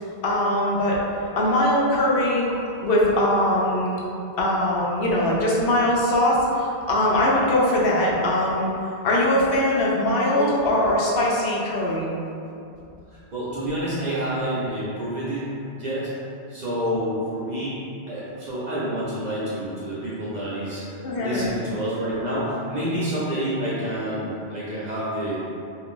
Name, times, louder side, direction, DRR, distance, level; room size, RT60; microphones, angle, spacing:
voice 1, 0.2-1.0 1.4-4.0 4.4-8.7 9.0-12.1 21.0-21.5, left 1 dB, 65° left, -4 dB, 0.8 m, -21 dB
voice 2, 13.1-16.1 16.5-17.8 18.1-25.4, right 1 dB, 50° right, -9 dB, 0.6 m, -28 dB
2.6 x 2.4 x 3.6 m, 2.6 s
omnidirectional pair, 1.1 m